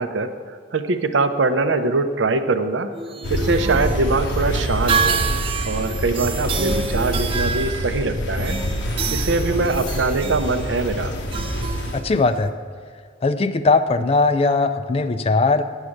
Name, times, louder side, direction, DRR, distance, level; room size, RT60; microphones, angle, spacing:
voice 1, 0.0-2.9 3.3-5.3 5.7-8.6 9.1-11.2, right 3 dB, 70° right, 9 dB, 0.6 m, -22 dB
sound 1, 2.9-12.5, right 5 dB, 30° right, 0.4 m, -28 dB
sound 2, 3.2-12.0, left 1 dB, 65° left, 0.8 m, -26 dB
voice 2, 11.9-12.5 13.2-15.6, left 3 dB, 30° left, 11 dB, 0.4 m, -19 dB
8.2 x 7.3 x 6.4 m, 2.1 s
head